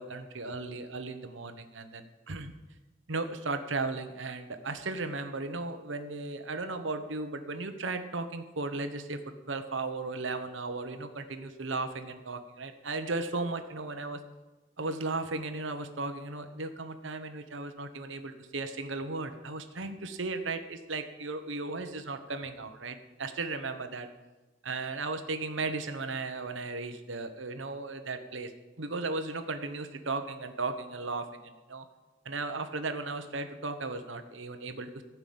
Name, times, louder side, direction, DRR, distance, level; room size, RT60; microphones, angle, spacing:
voice 1, 0.0-2.5 3.1-9.2 9.5-14.2 14.8-24.1 24.6-28.5 28.8-31.8 32.2-35.0, right 3 dB, 80° right, 8 dB, 1.2 m, -36 dB
15.0 x 5.9 x 8.7 m, 1.1 s
head